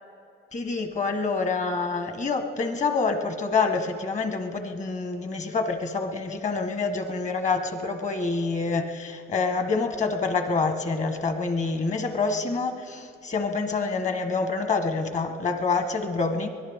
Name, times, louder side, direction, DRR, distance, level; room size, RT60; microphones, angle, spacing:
voice 1, 0.5-16.5, left 4 dB, 35° left, 7 dB, 1.3 m, -27 dB
23.0 x 17.0 x 3.6 m, 2.4 s
cardioid pair, 90°, 20 cm